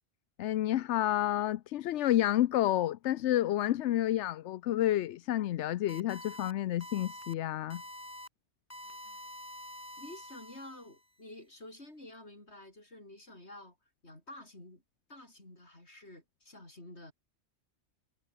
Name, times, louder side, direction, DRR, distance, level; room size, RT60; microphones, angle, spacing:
voice 1, 0.4-7.8, left 13 dB, 85° left, 0.9 m, -30 dB
sound 1, 5.9-6.5 6.8-7.3 7.7-8.3 8.7-11.0, left 1 dB, 10° left, 4.0 m, -47 dB
voice 2, 8.8-9.3 10.0-13.8 14.0-14.8 15.1-17.1, left 1 dB, 70° left, 7.2 m, -50 dB
omnidirectional pair, 1.2 m